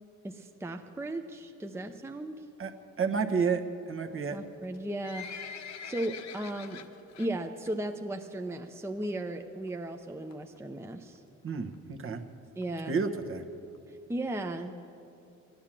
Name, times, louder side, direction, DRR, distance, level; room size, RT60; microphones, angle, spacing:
voice 1, 0.2-2.5 4.3-5.5 5.8-6.8 7.2-11.2 12.6-13.0 13.9-14.9, right 1 dB, 10° right, 5 dB, 0.7 m, -36 dB
voice 2, 3.0-4.4 11.4-12.2 12.9-13.4, right 5 dB, 45° right, 5 dB, 1.2 m, -30 dB
Livestock farm animals working animals, 4.6-7.3 7.7-7.9 8.2-8.3 9.0-9.1 9.4-9.5 9.7-9.8 10.3-10.6 11.2-11.3 11.5-11.6 11.7-11.8 12.1-12.2 12.6-12.7 13.2-13.3 13.7-13.8, left 7 dB, 60° left, 1.0 m, -44 dB
16.0 x 10.5 x 7.5 m, 2.8 s
cardioid pair, 90°, 30 cm